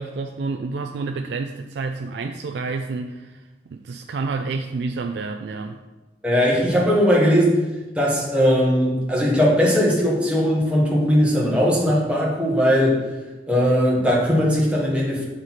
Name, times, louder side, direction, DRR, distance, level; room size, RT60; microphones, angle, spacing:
voice 1, 0.0-5.8, right 4 dB, 75° right, 5 dB, 0.3 m, -29 dB
voice 2, 6.2-7.7 7.9-13.1 13.5-15.2, equal, 5° right, -6 dB, 1.4 m, -19 dB
6.4 x 4.5 x 4.1 m, 1.2 s
head